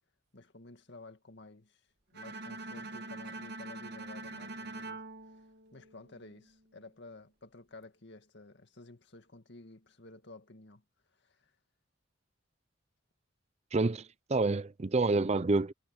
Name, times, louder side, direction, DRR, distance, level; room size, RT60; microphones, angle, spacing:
voice 1, 0.3-1.8 2.1-5.4 5.7-10.8 11.2-11.5, left 2 dB, 60° left, 2.0 m, -53 dB
Bowed string instrument, 2.1-6.3, right 2 dB, 55° right, 1.9 m, -44 dB
voice 2, 13.7-15.7, right 3 dB, 35° right, 0.5 m, -28 dB
head